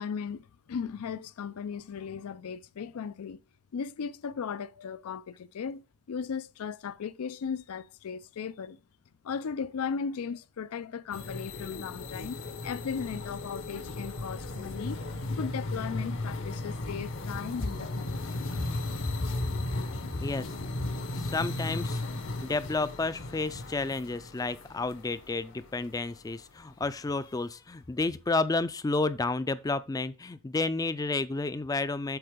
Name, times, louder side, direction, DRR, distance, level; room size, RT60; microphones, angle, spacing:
voice 1, 0.0-3.4 3.7-8.8 9.2-15.0 15.3-18.1, left 6 dB, 85° left, 0.4 m, -37 dB
sound 1, 11.1-26.4, left 2 dB, 60° left, 0.9 m, -36 dB
voice 2, 21.1-22.0 22.4-32.2, left 3 dB, 15° left, 0.3 m, -31 dB
8.0 x 3.9 x 5.0 m
head